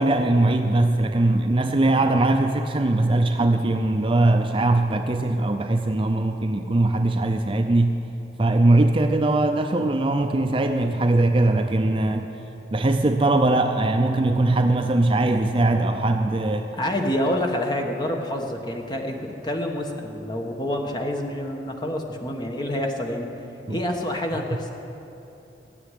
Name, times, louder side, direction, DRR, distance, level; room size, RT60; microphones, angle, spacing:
voice 1, 0.0-7.9 8.4-12.2 12.7-16.7 23.7-23.8, right 2 dB, 30° right, 5 dB, 0.5 m, -21 dB
voice 2, 16.7-23.3 23.7-24.7, left 1 dB, 25° left, 2 dB, 1.3 m, -27 dB
16.0 x 6.9 x 9.8 m, 2.9 s
head